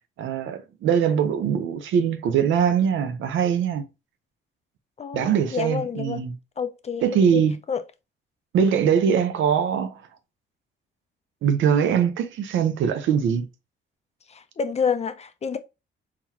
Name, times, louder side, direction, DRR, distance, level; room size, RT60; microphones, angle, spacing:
voice 1, 0.2-3.8 5.1-6.4 7.0-7.5 8.5-10.0 11.4-13.5, right 7 dB, 75° right, 0.7 m, -22 dB
voice 2, 5.0-6.2 6.6-7.0 7.3-7.4 7.7-7.8 14.3-15.6, left 6 dB, 35° left, 0.4 m, -28 dB
3.9 x 2.9 x 2.8 m
cardioid pair, 90°, 20 cm